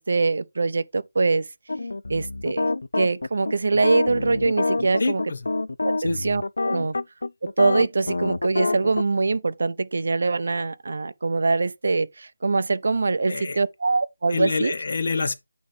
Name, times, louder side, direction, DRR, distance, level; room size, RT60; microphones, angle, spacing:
voice 1, 0.0-1.5 2.1-2.7 2.9-5.2 5.8-6.9 7.4-14.7, right 3 dB, 50° right, 0.5 m, -23 dB
sound 1, 1.7-9.0, left 2 dB, 70° left, 0.4 m, -26 dB
voice 2, 5.0-5.4 6.0-6.2 13.3-13.6 14.3-15.3, left 4 dB, 45° left, 1.0 m, -26 dB
8.9 x 3.0 x 4.8 m
figure-of-eight pair, 175°, 0 cm